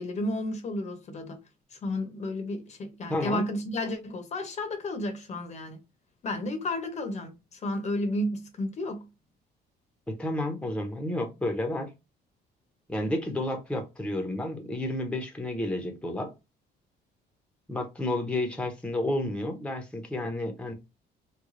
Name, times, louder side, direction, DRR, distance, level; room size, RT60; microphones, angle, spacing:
voice 1, 0.0-1.4 1.7-5.8 6.2-9.1, left 1 dB, 45° left, 0.9 m, -32 dB
voice 2, 3.1-3.4 10.2-11.9 12.9-16.3 17.7-20.7, left 1 dB, 5° left, 0.8 m, -31 dB
3.2 x 2.3 x 3.7 m
cardioid pair, 110°, 17 cm